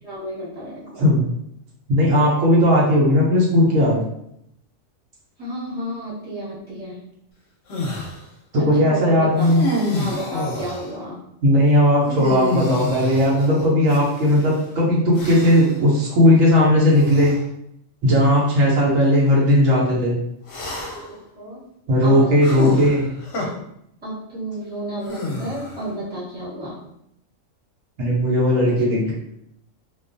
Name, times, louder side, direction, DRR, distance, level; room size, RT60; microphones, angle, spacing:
voice 1, 0.0-1.0 5.4-7.0 8.5-9.4 9.9-11.2 21.1-21.6 22.0-22.7 24.0-26.8, right 1 dB, 10° right, -10 dB, 1.0 m, -31 dB
voice 2, 1.9-4.0 8.5-9.6 11.4-17.4 18.0-20.1 21.9-23.0 28.0-29.1, left 1 dB, 70° right, -5 dB, 1.0 m, -17 dB
sound 1, 7.7-8.2 9.4-10.9 12.1-14.4 15.1-15.8 16.9-17.4 18.2-18.4 20.5-21.2 22.4-23.5 25.0-25.9, left 2 dB, 60° left, 0.8 m, -28 dB
2.4 x 2.2 x 2.5 m, 0.77 s
omnidirectional pair, 1.5 m